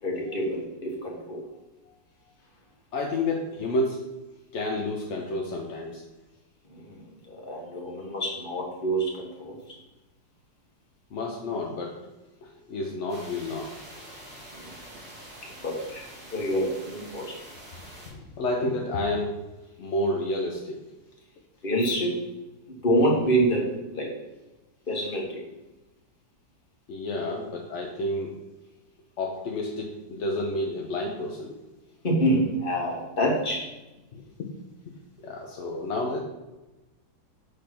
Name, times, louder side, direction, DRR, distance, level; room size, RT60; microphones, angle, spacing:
voice 1, 0.0-1.4 6.7-9.6 14.5-14.7 15.6-16.0 16.3-17.4 21.6-22.2 22.7-24.1 24.9-25.4 32.0-33.7, right 1 dB, 30° left, -2 dB, 1.5 m, -27 dB
voice 2, 2.9-4.0 4.5-6.0 11.1-12.0 12.4-13.7 18.1-19.4 19.8-20.8 26.9-28.4 29.2-31.6 34.1-34.2 35.2-36.2, left 1 dB, 60° left, 0 dB, 0.8 m, -30 dB
sound 1, 13.1-18.1, right 1 dB, 70° right, 3.0 m, -46 dB
6.5 x 3.4 x 5.8 m, 1.0 s
omnidirectional pair, 2.0 m